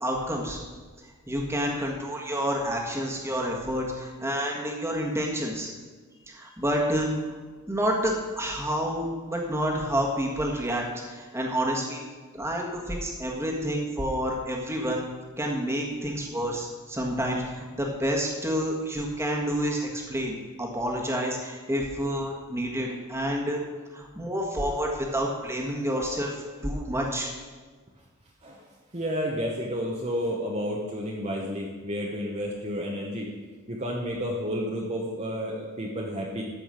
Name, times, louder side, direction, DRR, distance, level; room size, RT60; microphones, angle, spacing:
voice 1, 0.0-0.6 1.3-5.7 6.3-7.1 7.7-12.0 12.3-15.0 15.4-23.6 23.9-27.3, equal, 10° right, -1 dB, 1.6 m, -29 dB
voice 2, 28.9-33.3 33.7-36.4, equal, 30° right, -2 dB, 1.1 m, -31 dB
14.0 x 5.4 x 6.5 m, 1.4 s
head